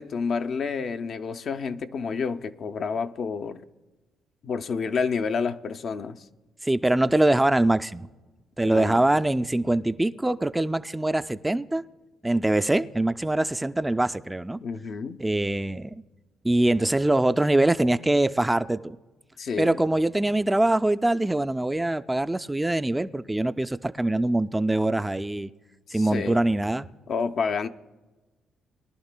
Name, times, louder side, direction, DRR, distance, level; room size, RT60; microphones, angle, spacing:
voice 1, 0.0-3.6 4.4-6.2 8.6-9.0 14.6-15.2 19.4-19.7 25.9-26.5 27.1-27.7, left 5 dB, 55° left, 0.5 m, -29 dB
voice 2, 6.6-8.1 8.6-11.8 12.2-14.6 15.2-16.0 16.4-19.0 19.6-25.5 25.9-26.9, right 1 dB, 10° right, 0.3 m, -23 dB
21.5 x 11.0 x 2.2 m
cardioid pair, 90°, 0 cm